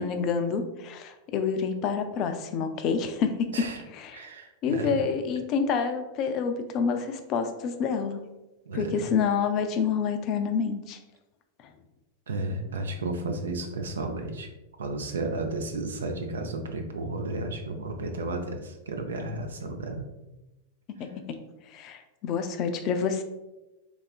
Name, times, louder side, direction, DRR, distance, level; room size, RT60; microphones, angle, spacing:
voice 1, 0.0-4.3 4.6-8.2 8.7-11.0 11.6-11.7 20.9-21.4 21.7-23.2, left 6 dB, 40° left, 7 dB, 0.3 m, -28 dB
voice 2, 4.1-5.0 8.7-9.0 12.3-14.5 14.8-20.1, right 2 dB, 75° right, 5 dB, 0.4 m, -33 dB
3.5 x 2.3 x 2.3 m, 1.0 s
figure-of-eight pair, 90°, 0 cm